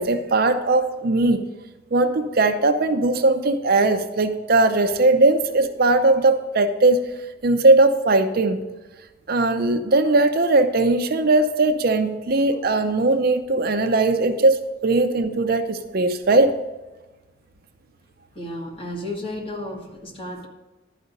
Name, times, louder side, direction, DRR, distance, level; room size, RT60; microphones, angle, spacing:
voice 1, 0.0-1.5 1.9-7.1 7.4-8.6 9.3-16.5, right 2 dB, 55° right, 7 dB, 0.6 m, -19 dB
voice 2, 18.3-20.5, left 1 dB, 30° left, -1 dB, 1.7 m, -33 dB
11.5 x 5.0 x 6.6 m, 1.1 s
head